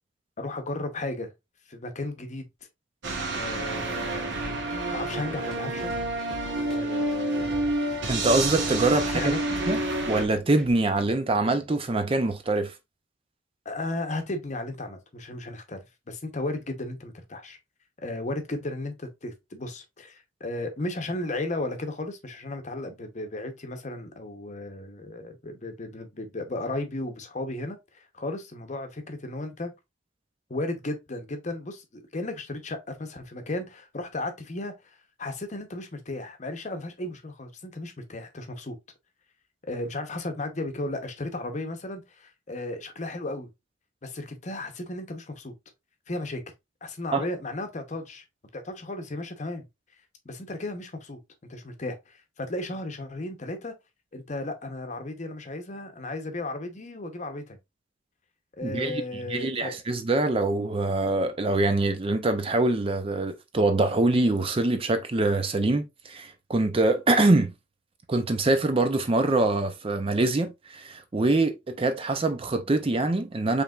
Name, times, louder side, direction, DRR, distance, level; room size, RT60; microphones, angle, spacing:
voice 1, 0.4-1.3 1.7-2.4 3.3-4.4 4.9-5.9 6.7-7.7 9.1-9.4 13.6-15.8 16.1-17.6 18.0-29.7 30.5-38.8 39.6-43.5 44.0-45.5 46.1-46.4 46.8-48.2 48.5-49.7 50.2-51.2 51.5-53.7 54.1-57.6 58.5-59.7, left 2 dB, 40° left, 0.8 m, -35 dB
sound 1, 3.0-10.3, right 2 dB, 65° right, 1.1 m, -29 dB
sound 2, 4.3-10.7, left 1 dB, ahead, 1.0 m, -44 dB
voice 2, 8.1-9.3 9.7-9.8 10.1-12.7 47.1-47.3 58.6-59.0 59.3-67.5 68.1-73.6, right 2 dB, 30° right, 0.5 m, -24 dB
5.0 x 3.3 x 2.3 m
head